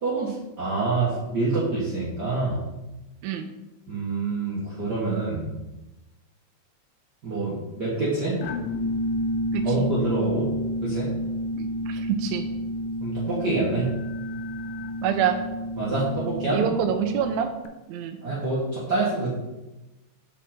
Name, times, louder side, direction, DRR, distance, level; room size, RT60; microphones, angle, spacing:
voice 1, 0.0-2.6 3.9-5.5 7.2-8.4 9.6-10.5 10.8-11.1 13.0-13.9 15.8-16.6 18.2-19.3, right 3 dB, 45° right, -7 dB, 1.6 m, -26 dB
sound 1, 8.4-17.7, equal, 85° left, 2.0 m, -30 dB
voice 2, 9.5-9.9 11.6-12.5 15.0-15.4 16.5-17.5 17.9-18.2, right 9 dB, 80° right, 5 dB, 1.8 m, -26 dB
7.6 x 5.1 x 4.3 m, 1.0 s
omnidirectional pair, 3.4 m